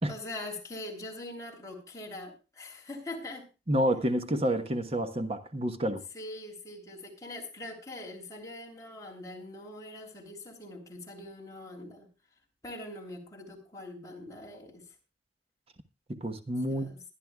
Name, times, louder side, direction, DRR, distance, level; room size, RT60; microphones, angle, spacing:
voice 1, 0.1-3.5 6.1-12.1 12.6-14.8 16.7-17.0, left 1 dB, 20° left, 3.4 m, -43 dB
voice 2, 3.7-6.0 16.1-16.9, right 1 dB, 35° right, 1.2 m, -29 dB
22.0 x 11.0 x 2.4 m
head